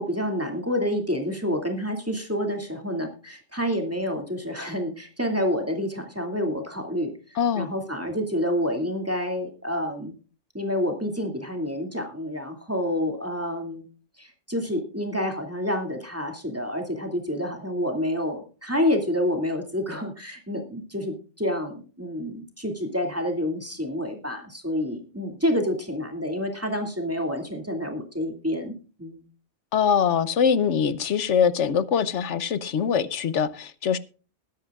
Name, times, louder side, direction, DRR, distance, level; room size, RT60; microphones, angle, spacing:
voice 1, 0.0-10.1 10.5-13.9 14.2-29.3, equal, 10° right, 2.4 m, -28 dB
voice 2, 7.4-7.7 29.7-34.0, left 7 dB, 80° left, 1.1 m, -23 dB
21.0 x 10.5 x 2.4 m
omnidirectional pair, 1.2 m